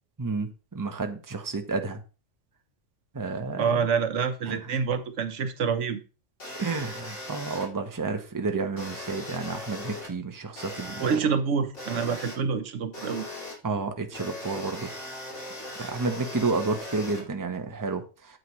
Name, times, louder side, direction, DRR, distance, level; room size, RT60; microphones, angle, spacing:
voice 1, 0.2-2.0 3.1-3.9 4.5-4.7 6.5-11.1 13.6-15.0 15.8-18.4, right 3 dB, 20° right, 0.9 m, -31 dB
voice 2, 3.5-6.0 11.0-13.2, right 6 dB, 80° right, 1.2 m, -27 dB
sound 1, 6.4-7.7 8.8-10.1 10.6-11.2 11.7-12.3 12.9-13.5 14.1-17.2, left 2 dB, 80° left, 3.4 m, -39 dB
9.0 x 7.9 x 3.1 m
omnidirectional pair, 1.2 m